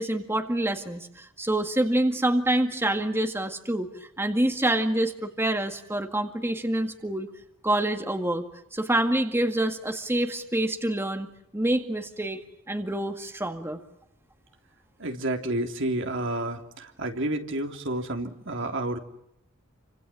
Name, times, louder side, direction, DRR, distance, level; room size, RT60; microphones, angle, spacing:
voice 1, 0.0-3.9 4.2-7.3 7.6-8.4 8.7-13.8, right 1 dB, 10° right, 6 dB, 2.0 m, -26 dB
voice 2, 15.0-19.0, right 1 dB, 65° right, 4 dB, 3.3 m, -30 dB
29.5 x 26.0 x 7.6 m, 0.78 s
head